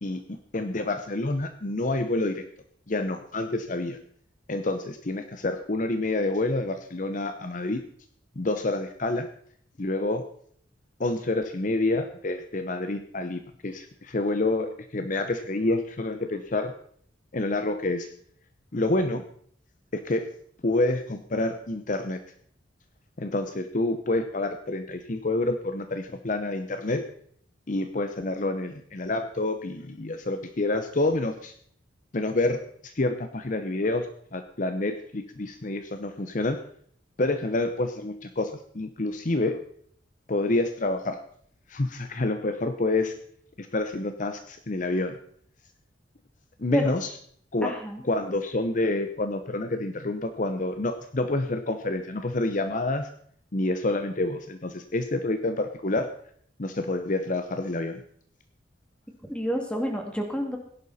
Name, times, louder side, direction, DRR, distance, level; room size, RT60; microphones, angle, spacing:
voice 1, 0.0-2.4 2.9-4.0 4.5-7.8 8.4-9.3 9.8-10.2 11.0-16.7 17.3-18.1 18.7-19.2 19.9-20.3 20.6-22.2 23.2-27.0 27.7-31.5 32.1-34.1 34.3-36.6 37.2-39.6 40.3-41.2 41.7-43.2 43.6-45.2 46.6-47.1 47.5-47.7 48.0-53.1 53.5-56.1 56.6-58.0, left 2 dB, 45° left, 8 dB, 0.8 m, -28 dB
voice 2, 47.6-48.0 59.3-60.6, equal, 5° left, 2 dB, 2.5 m, -28 dB
16.5 x 11.0 x 4.2 m, 0.62 s
head